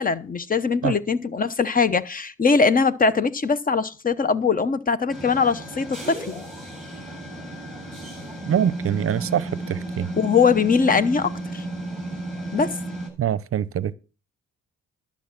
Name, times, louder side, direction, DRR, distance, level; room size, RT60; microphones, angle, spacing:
voice 1, 0.0-6.4 10.2-11.6 12.5-12.7, left 5 dB, 30° left, 0.8 m, -21 dB
sound 1, 5.1-13.1, right 2 dB, ahead, 7.9 m, -33 dB
voice 2, 8.5-10.1 13.2-13.9, right 10 dB, 50° right, 0.7 m, -24 dB
12.0 x 7.2 x 5.9 m
cardioid pair, 90°, 30 cm